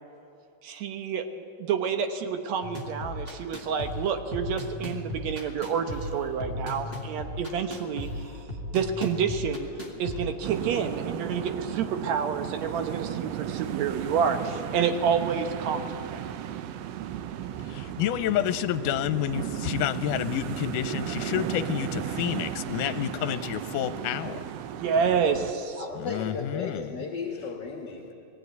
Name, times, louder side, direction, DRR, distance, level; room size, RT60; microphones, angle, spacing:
voice 1, 0.6-1.3 1.6-8.1 8.7-9.7 10.0-16.2 24.7-25.9, right 6 dB, 65° right, 7 dB, 2.0 m, -28 dB
sound 1, 2.6-10.6, left 1 dB, 25° right, 1.6 m, -36 dB
sound 2, 10.4-25.5, right 11 dB, 85° right, 1.4 m, -35 dB
voice 2, 17.7-24.4 26.0-26.9, left 11 dB, 80° left, 11 dB, 2.1 m, -29 dB
voice 3, 25.8-28.1, left 4 dB, 45° left, 1 dB, 1.5 m, -35 dB
20.0 x 15.0 x 9.4 m, 2.8 s
omnidirectional pair, 3.8 m